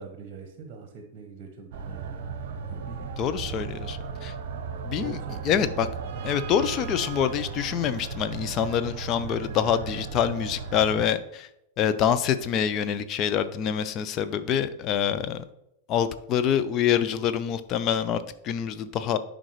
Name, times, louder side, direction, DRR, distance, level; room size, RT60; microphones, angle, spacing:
voice 1, 0.0-3.1 3.6-3.8 4.6-6.2, right 5 dB, 30° right, 5 dB, 1.1 m, -44 dB
sound 1, 1.7-11.1, right 6 dB, 55° right, 0.7 m, -36 dB
voice 2, 3.2-4.3 4.8-5.2 5.4-5.9 6.2-11.5 11.8-15.4 15.9-19.2, left 8 dB, 35° left, 11 dB, 0.5 m, -26 dB
11.0 x 5.1 x 3.1 m, 0.84 s
figure-of-eight pair, 90°, 0 cm